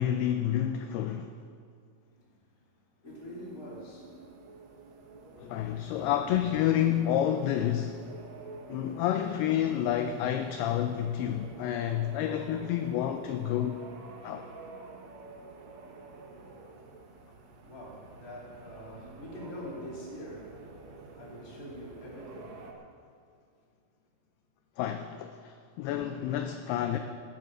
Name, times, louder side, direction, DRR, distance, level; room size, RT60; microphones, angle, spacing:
voice 1, 0.0-1.4 5.4-8.1 8.7-13.8 14.2-14.5 24.8-27.0, left 10 dB, 80° left, 2.3 m, -29 dB
voice 2, 2.0-2.6 3.0-4.3 5.3-5.9 16.3-16.4 17.6-20.8 21.1-22.6, equal, 25° left, 2.5 m, -45 dB
sound 1, 3.0-22.7, right 3 dB, 70° right, 1.6 m, -49 dB
18.5 x 7.7 x 6.5 m
omnidirectional pair, 5.0 m